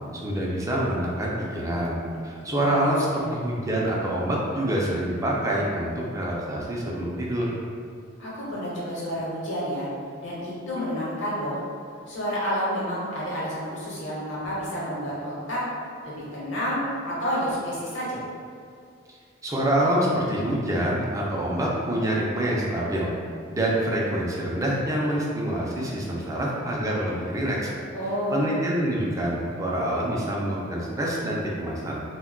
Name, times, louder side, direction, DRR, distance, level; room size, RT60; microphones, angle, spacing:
voice 1, 0.1-7.6 19.1-19.2 19.4-23.1 23.5-27.7 28.3-32.0, right 1 dB, 15° right, -4 dB, 0.4 m, -26 dB
voice 2, 2.4-2.8 3.1-3.2 8.2-9.9 10.2-11.6 12.1-15.6 16.0-18.2 27.9-28.4, equal, 65° left, -8 dB, 0.9 m, -30 dB
2.2 x 2.1 x 3.6 m, 2.3 s
head